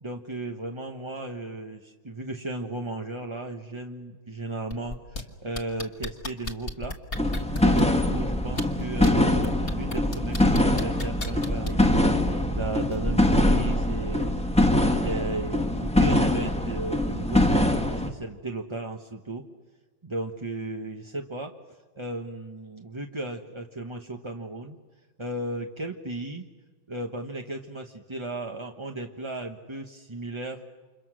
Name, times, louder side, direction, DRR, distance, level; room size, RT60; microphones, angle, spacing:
voice 1, 0.0-7.0 7.6-12.0 12.5-14.3 14.9-19.4 20.0-21.5 22.0-24.8 25.2-26.5 26.9-30.6, right 2 dB, 20° right, 2 dB, 0.9 m, -35 dB
sound 1, 4.7-5.2 5.5-8.0 8.5-9.1 9.4-11.9 12.9-13.0, left 2 dB, 30° left, 1.8 m, -33 dB
sound 2, 7.1-18.1, left 1 dB, 5° left, 1.4 m, -23 dB
30.0 x 27.5 x 6.3 m, 1.4 s
omnidirectional pair, 2.2 m